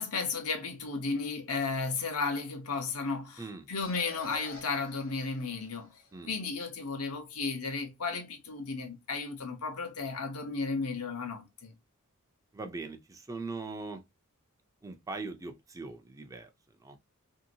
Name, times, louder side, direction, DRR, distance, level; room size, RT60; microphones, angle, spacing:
voice 1, 0.0-3.4 3.7-6.0 6.3-11.7, left 4 dB, 85° left, 0.9 m, -34 dB
voice 2, 3.4-3.7 6.1-6.3 12.5-14.0 14.8-17.0, right 3 dB, 15° right, 0.4 m, -41 dB
sound 1, 3.8-6.3, left 2 dB, 65° left, 1.2 m, -48 dB
3.0 x 2.8 x 2.7 m
head